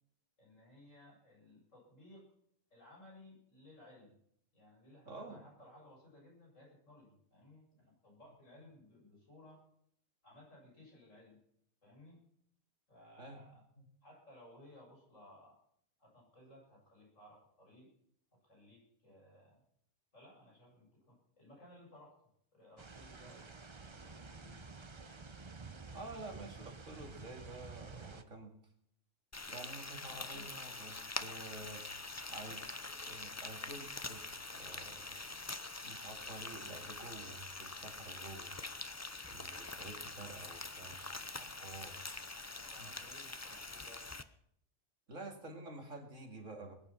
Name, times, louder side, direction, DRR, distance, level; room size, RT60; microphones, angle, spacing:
voice 1, 0.4-2.3 2.7-4.2 4.5-9.6 10.2-11.4 11.8-12.2 12.9-13.6 14.0-15.6 16.0-17.9 18.3-19.6 20.1-23.5 23.9-24.6 30.0-30.6 42.6-44.1, left 1 dB, 75° left, -2 dB, 7.9 m, -59 dB
voice 2, 5.1-5.4 8.6-8.7 13.2-13.4 13.8-13.9 25.9-28.5 29.5-31.8 32.2-35.3 35.8-38.6 39.3-42.1 42.8-42.9 43.3-43.4 45.1-46.7, right 2 dB, 75° right, 3 dB, 2.8 m, -50 dB
sound 1, 22.8-28.2, right 4 dB, 25° right, 0.8 m, -51 dB
Frying (food), 29.3-44.2, left 3 dB, 20° left, 0.5 m, -45 dB
21.0 x 10.0 x 5.8 m, 0.68 s
omnidirectional pair, 1.3 m